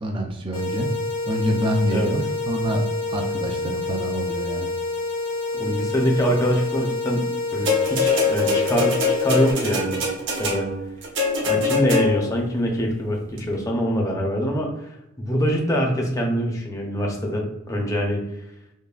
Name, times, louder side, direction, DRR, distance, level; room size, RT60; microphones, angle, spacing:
voice 1, 0.0-0.9 1.3-2.8 3.1-4.7, equal, 25° right, 2 dB, 0.4 m, -26 dB
sound 1, 0.5-9.5, left 3 dB, 70° left, 1.1 m, -28 dB
voice 2, 5.5-7.2 7.5-10.0 10.4-10.7 11.4-14.9 15.2-18.2, equal, 15° left, 0 dB, 0.6 m, -24 dB
sound 2, 7.7-12.4 13.4-13.5, left 4 dB, 55° right, 1.0 m, -23 dB
5.4 x 2.2 x 2.4 m, 0.88 s
head